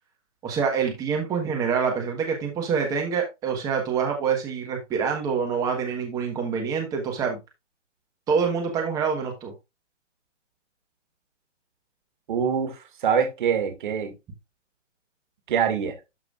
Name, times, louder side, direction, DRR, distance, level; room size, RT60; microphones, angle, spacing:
voice 1, 0.4-7.4 8.3-9.5, right 6 dB, 10° right, 1.3 m, -26 dB
voice 2, 12.3-14.2 15.5-16.0, right 7 dB, 40° right, 2.2 m, -24 dB
12.0 x 5.5 x 2.5 m
hypercardioid pair, 150°, 37 cm